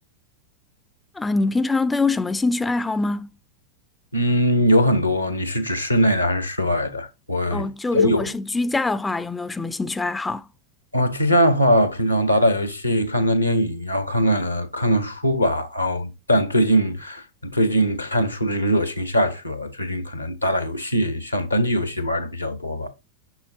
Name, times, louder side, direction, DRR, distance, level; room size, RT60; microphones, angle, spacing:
voice 1, 1.2-3.3 7.5-10.5, left 3 dB, 10° left, 0.3 m, -24 dB
voice 2, 4.1-8.3 10.9-17.2 17.5-22.9, equal, 85° left, 1.0 m, -21 dB
6.2 x 6.1 x 2.7 m
figure-of-eight pair, 90°, 0 cm